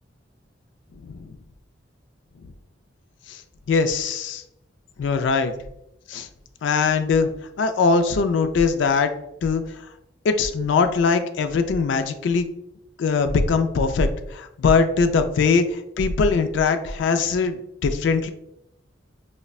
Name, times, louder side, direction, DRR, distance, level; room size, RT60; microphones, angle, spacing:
voice 1, 3.7-4.4 5.0-5.5 6.1-6.3 6.6-7.3 7.6-9.1 9.4-9.6 10.2-12.5 13.0-18.3, left 4 dB, 70° left, 8 dB, 0.3 m, -21 dB
5.0 x 2.1 x 2.3 m, 0.82 s
head